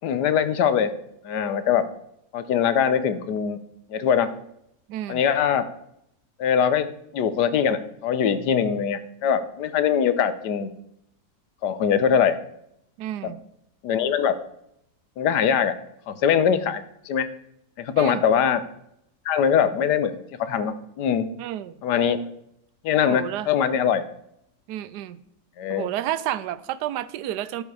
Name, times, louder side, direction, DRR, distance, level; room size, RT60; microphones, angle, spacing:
voice 1, 0.0-0.9 1.2-1.9 2.3-3.6 3.9-4.3 5.1-5.7 6.4-6.9 7.1-10.7 11.6-12.4 13.2-13.3 13.8-14.4 15.2-15.8 16.1-17.3 17.8-18.6 19.2-20.1 20.4-21.3 21.8-22.2 22.8-24.0 25.6-25.9, left 8 dB, 85° left, 12 dB, 1.4 m, -22 dB
voice 2, 4.9-5.2 13.0-13.4 18.0-18.2 21.4-21.8 23.1-23.5 24.7-25.2 25.7-27.6, right 12 dB, 80° right, 16 dB, 1.1 m, -30 dB
12.5 x 5.4 x 4.8 m, 0.76 s
omnidirectional pair, 1.8 m